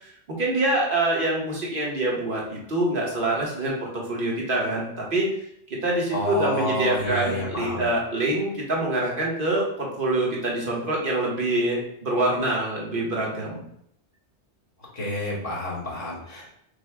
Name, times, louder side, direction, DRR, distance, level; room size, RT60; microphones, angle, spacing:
voice 1, 0.0-5.3 5.7-13.6, right 2 dB, 50° right, -3 dB, 1.2 m, -25 dB
voice 2, 6.1-7.9 14.9-16.5, left 1 dB, 50° left, -5 dB, 1.8 m, -29 dB
5.3 x 2.3 x 3.4 m, 0.73 s
omnidirectional pair, 1.1 m